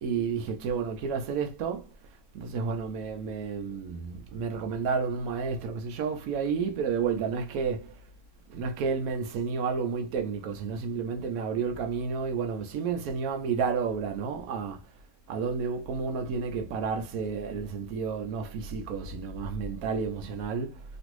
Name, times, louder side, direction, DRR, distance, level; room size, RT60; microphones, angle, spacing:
voice 1, 0.0-1.9 2.3-7.9 8.5-14.8 15.3-20.8, right 5 dB, 80° right, 1.1 m, -31 dB
3.0 x 2.5 x 3.0 m
omnidirectional pair, 1.5 m